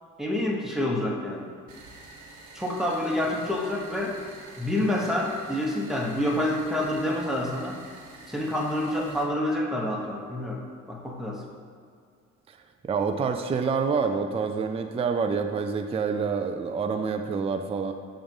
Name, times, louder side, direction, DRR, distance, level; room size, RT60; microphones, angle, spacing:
voice 1, 0.2-1.5 2.5-4.2 4.6-7.8 8.3-10.6 10.9-11.4, left 1 dB, ahead, -1 dB, 1.0 m, -28 dB
sound 1, 1.7-9.2, right 3 dB, 70° right, 1.1 m, -48 dB
voice 2, 12.8-17.9, right 5 dB, 20° right, 6 dB, 0.3 m, -27 dB
7.0 x 2.5 x 5.3 m, 2.2 s
cardioid pair, 90°, 30 cm